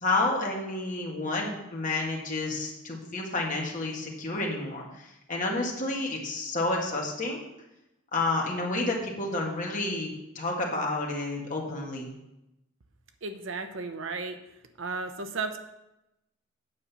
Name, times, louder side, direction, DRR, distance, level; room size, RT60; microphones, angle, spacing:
voice 1, 0.0-7.4 8.1-12.1, left 2 dB, 35° left, -1 dB, 1.7 m, -30 dB
voice 2, 13.2-14.4 14.8-15.6, right 4 dB, 60° right, 7 dB, 0.8 m, -34 dB
8.8 x 5.4 x 7.1 m, 0.92 s
head